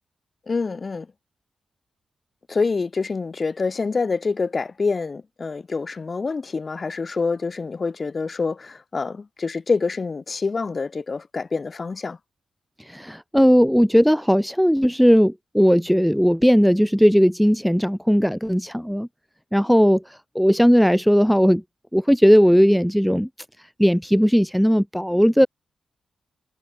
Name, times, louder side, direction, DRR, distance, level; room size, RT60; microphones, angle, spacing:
voice 1, 0.5-1.1 2.5-12.2, left 4 dB, 45° left, 7.1 m, -26 dB
voice 2, 12.8-19.1 19.5-21.6 21.9-23.3 23.8-25.5, equal, ahead, 1.4 m, -17 dB
cardioid pair, 60°, 0 cm